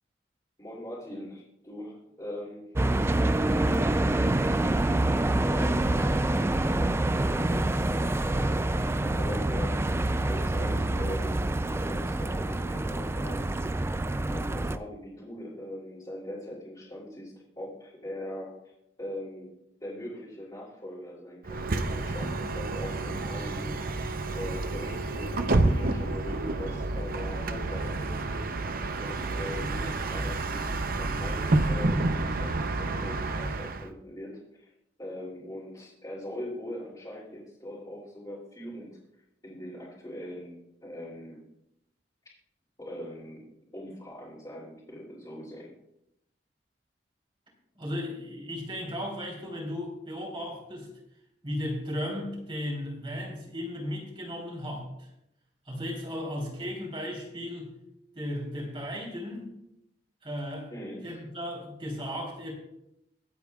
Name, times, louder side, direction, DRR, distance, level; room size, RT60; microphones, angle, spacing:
voice 1, 0.6-2.7 3.5-4.4 4.7-13.4 14.3-18.5 19.0-19.5 19.8-28.4 28.9-34.7 35.0-39.0 39.4-40.6 40.8-41.4 42.8-43.4 43.7-45.7 60.7-61.2, left 1 dB, 25° left, -7 dB, 3.1 m, -41 dB
sound 1, 2.7-14.8, right 1 dB, 15° right, 0.4 m, -26 dB
Bus, 21.4-33.9, right 2 dB, 55° right, 0.7 m, -29 dB
voice 2, 47.8-50.9 51.4-55.1 55.7-57.7 58.2-59.5 60.2-60.7 61.0-62.5, left 1 dB, 30° right, -2 dB, 3.6 m, -35 dB
23.5 x 8.3 x 2.4 m, 0.83 s
head